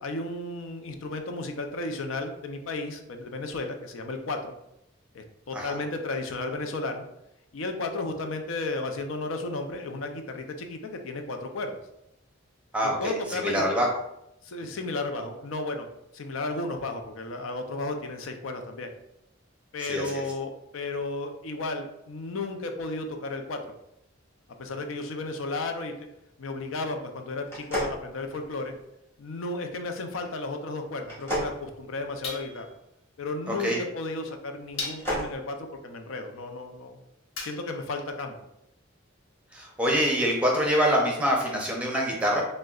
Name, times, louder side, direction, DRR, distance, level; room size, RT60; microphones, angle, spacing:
voice 1, 0.0-4.5 5.1-7.0 7.5-11.8 12.8-13.6 14.4-15.9 16.1-18.9 19.7-23.7 24.6-26.1 26.4-28.7 29.2-32.7 33.2-37.0 37.4-38.3, left 2 dB, 85° left, 5 dB, 0.5 m, -33 dB
voice 2, 12.7-13.9 19.8-20.1 33.5-33.8 39.5-42.4, equal, 5° right, -1 dB, 0.6 m, -25 dB
sound 1, 27.5-28.8 31.0-32.6 34.7-35.3, equal, 10° left, 1.1 m, -33 dB
sound 2, 32.2-32.8 33.9-34.0 34.8-35.3 37.4-37.9, left 3 dB, 70° left, 1.0 m, -37 dB
6.2 x 2.1 x 2.3 m, 0.82 s
head